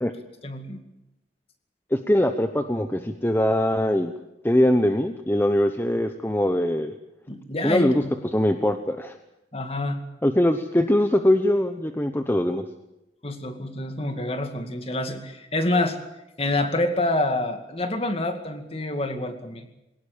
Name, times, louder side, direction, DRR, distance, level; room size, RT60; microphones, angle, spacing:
voice 1, 0.4-0.8 7.3-8.1 9.5-10.0 13.2-16.0 16.4-19.7, left 2 dB, 35° left, 7 dB, 2.2 m, -27 dB
voice 2, 1.9-4.1 4.4-6.9 7.6-8.0 8.3-9.2 10.2-12.6, left 1 dB, 10° left, 7 dB, 0.9 m, -22 dB
21.5 x 18.5 x 8.6 m, 0.91 s
head